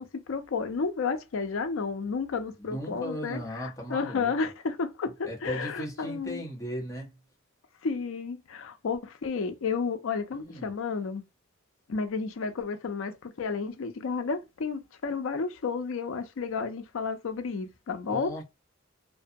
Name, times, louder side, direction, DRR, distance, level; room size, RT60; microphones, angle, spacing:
voice 1, 0.0-6.4 7.8-11.2 11.9-18.3, left 5 dB, 80° left, 0.4 m, -32 dB
voice 2, 2.6-4.3 5.2-7.1 10.3-10.7 18.1-18.4, equal, 15° left, 0.8 m, -36 dB
2.6 x 2.2 x 2.6 m
head